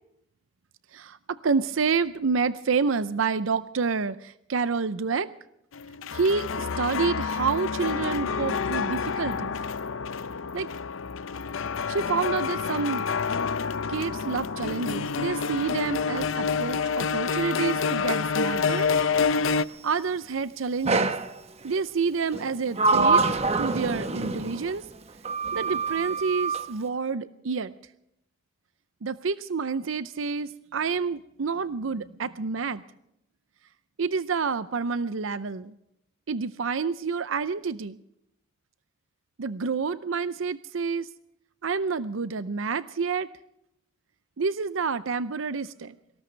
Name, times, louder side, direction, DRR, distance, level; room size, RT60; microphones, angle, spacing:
voice 1, 0.9-5.3 6.1-9.5 10.5-10.7 11.9-13.0 13.9-18.9 19.8-21.1 21.6-23.3 23.6-24.9 25.5-27.7 29.0-32.8 34.0-35.7 36.3-38.0 39.4-41.1 41.6-43.3 44.4-46.0, right 5 dB, 80° right, 15 dB, 0.6 m, -28 dB
sound 1, 5.7-19.6, left 5 dB, 80° left, 0.6 m, -28 dB
Sliding door, 20.9-21.3 22.3-24.8 25.3-26.7, right 3 dB, 35° right, 1.0 m, -25 dB
23.5 x 18.5 x 3.3 m, 0.80 s
head